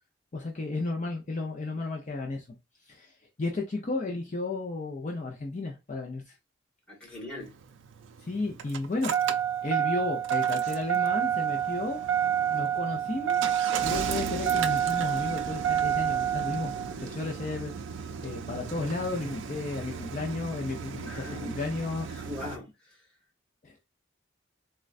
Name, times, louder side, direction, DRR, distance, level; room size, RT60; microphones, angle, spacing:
voice 1, 0.3-2.5 2.9-3.1 3.4-6.3 8.2-9.1 9.6-12.0 12.5-13.4 13.8-16.7 17.0-17.7 18.2-22.1 23.6-23.8, left 3 dB, 40° left, 0.5 m, -33 dB
voice 2, 6.9-7.5 21.0-21.6 22.1-22.7, left 2 dB, 5° left, 1.0 m, -40 dB
Engine starting, 7.4-22.6, right 9 dB, 80° right, 0.4 m, -30 dB
3.7 x 2.1 x 2.4 m
head